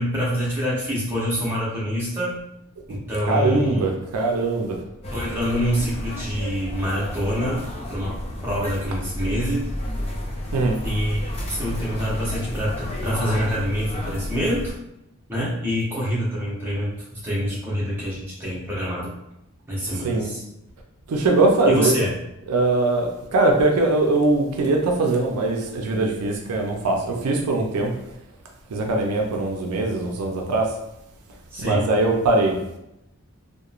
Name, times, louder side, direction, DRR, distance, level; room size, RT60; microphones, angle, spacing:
voice 1, 0.0-2.4 2.9-3.9 5.1-8.2 8.4-9.7 10.8-11.2 11.5-14.7 15.3-19.1 19.7-20.4 21.6-22.1 31.5-31.9, equal, 10° right, -8 dB, 0.8 m, -26 dB
voice 2, 3.3-4.8 10.5-10.8 20.0-20.3 21.1-21.9 22.5-27.9 28.7-30.7 31.6-32.6, right 2 dB, 90° right, 1 dB, 0.4 m, -21 dB
sound 1, 5.0-14.7, left 1 dB, 25° left, 0.3 m, -31 dB
2.9 x 2.1 x 2.4 m, 0.85 s
head